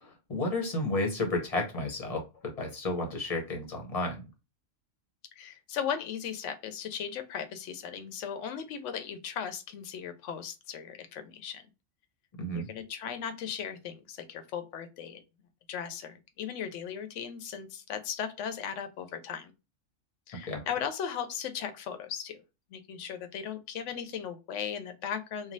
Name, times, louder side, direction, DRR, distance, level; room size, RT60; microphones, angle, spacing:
voice 1, 0.0-4.2 12.4-12.7 20.5-20.6, left 2 dB, 35° left, 2 dB, 0.9 m, -32 dB
voice 2, 5.4-11.6 12.5-15.2 15.7-19.5 20.3-22.4 22.7-25.5, left 8 dB, 75° left, 8 dB, 0.9 m, -37 dB
3.1 x 2.3 x 2.5 m, 0.28 s
omnidirectional pair, 1.3 m